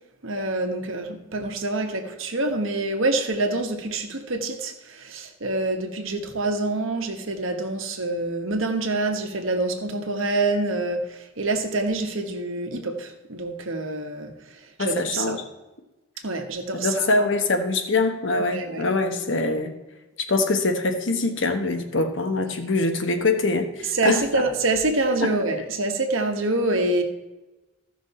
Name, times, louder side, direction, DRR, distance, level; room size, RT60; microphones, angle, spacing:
voice 1, 0.2-14.3 14.8-15.4 16.2-17.3 18.4-18.8 23.9-27.0, right 2 dB, 70° right, 4 dB, 1.4 m, -26 dB
voice 2, 14.8-15.4 16.7-19.7 20.3-24.4 25.2-25.4, left 3 dB, 60° left, 6 dB, 1.2 m, -23 dB
15.0 x 6.1 x 4.3 m, 1.0 s
head